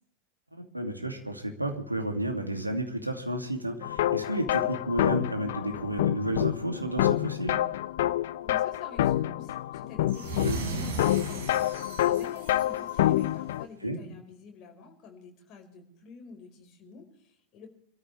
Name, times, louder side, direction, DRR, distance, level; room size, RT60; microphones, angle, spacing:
voice 1, 0.7-7.6 10.4-10.6 13.8-14.0, right 1 dB, 85° right, 3 dB, 2.6 m, -31 dB
sound 1, 3.8-13.6, left 13 dB, 55° left, 0.6 m, -28 dB
voice 2, 8.4-17.7, left 5 dB, 35° left, 3 dB, 4.9 m, -49 dB
sound 2, 10.1-13.4, right 3 dB, 60° right, 5.0 m, -37 dB
27.0 x 13.5 x 3.4 m, 0.70 s
figure-of-eight pair, 90°, 0 cm